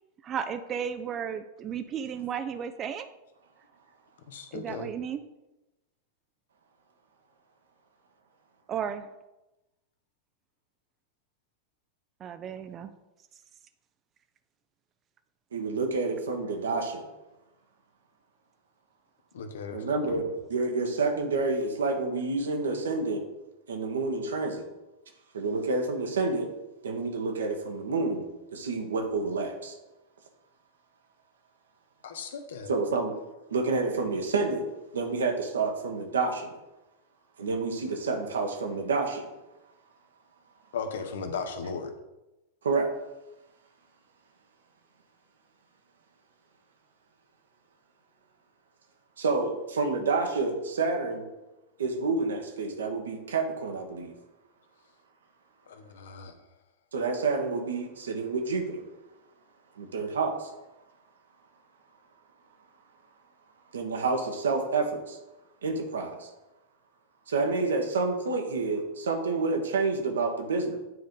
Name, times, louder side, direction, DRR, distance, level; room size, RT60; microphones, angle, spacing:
voice 1, 0.2-3.1 4.5-5.2 8.7-9.1 12.2-12.9, right 8 dB, 30° right, 9 dB, 0.4 m, -34 dB
voice 2, 4.3-4.9 19.3-20.3 32.0-32.7 40.7-41.9 55.7-56.3, left 5 dB, 60° left, 7 dB, 0.8 m, -37 dB
voice 3, 15.5-17.1 19.7-23.2 23.7-24.7 25.3-26.5 26.8-28.3 28.5-29.7 32.7-33.1 33.5-34.7 34.9-36.5 37.4-39.3 42.6-42.9 49.2-51.2 51.8-54.1 56.9-58.8 59.8-60.5 63.7-65.2 65.6-66.3 67.3-70.8, right 3 dB, 65° right, 4 dB, 1.0 m, -29 dB
9.2 x 3.7 x 3.7 m, 0.99 s
figure-of-eight pair, 90°, 0 cm